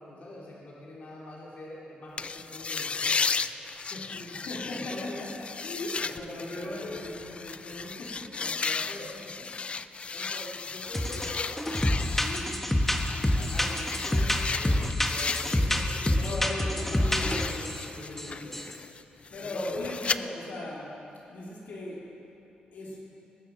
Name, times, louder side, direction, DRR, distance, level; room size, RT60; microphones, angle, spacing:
voice 1, 0.0-3.3 3.9-4.1 4.7-5.2 6.4-7.0 8.4-9.7 10.1-11.6 13.5-17.3 18.0-18.6 19.5-19.9, left 2 dB, 60° left, -5 dB, 2.5 m, -43 dB
sound 1, 2.2-16.4 16.7-20.2, left 5 dB, 40° left, 0.3 m, -35 dB
voice 2, 4.1-8.5 12.2-13.8 16.2-18.6 19.0-21.0 21.3-22.1 22.7-23.0, left 1 dB, 75° left, -5 dB, 2.7 m, -39 dB
sound 2, 10.9-11.3 11.6-17.8 18.2-18.3 18.5-18.7, left 1 dB, 10° left, 1.1 m, -27 dB
20.5 x 6.9 x 5.9 m, 3.0 s
cardioid pair, 95°, 3 cm